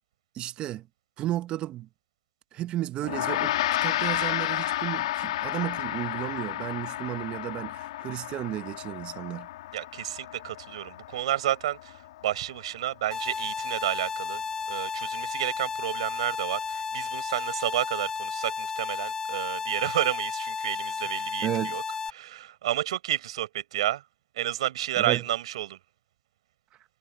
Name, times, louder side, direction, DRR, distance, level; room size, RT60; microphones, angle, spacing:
voice 1, 0.3-0.9 1.2-1.9 2.5-9.5 21.4-21.8 25.0-25.2, right 13 dB, 30° right, 1.1 m, -33 dB
Gong, 3.0-12.6, left 14 dB, 70° left, 2.1 m, -32 dB
voice 2, 9.7-14.4 14.7-21.8 22.1-24.0 24.3-25.8, right 13 dB, 70° right, 5.5 m, -30 dB
sound 1, 13.1-22.1, left 5 dB, 15° left, 1.4 m, -33 dB
hypercardioid pair, 130°, 3 cm